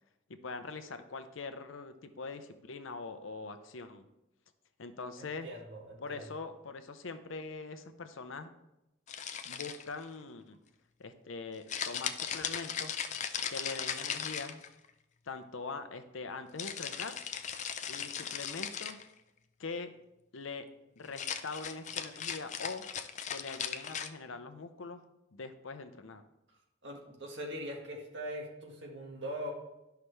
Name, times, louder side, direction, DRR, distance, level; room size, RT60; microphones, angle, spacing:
voice 1, 0.4-4.1 4.8-5.5 6.0-8.5 9.4-10.6 11.0-13.0 13.5-14.6 15.3-17.2 17.9-19.0 19.6-19.9 20.3-20.7 21.0-22.9 23.3-25.0 25.3-26.2, left 4 dB, 80° left, 9 dB, 0.7 m, -42 dB
voice 2, 5.2-6.2 26.8-29.5, equal, 60° right, 0 dB, 1.7 m, -41 dB
sound 1, 9.1-10.0 11.7-14.9 16.6-19.1 21.1-24.1, left 8 dB, 35° left, 0.4 m, -38 dB
11.0 x 5.7 x 3.3 m, 0.92 s
head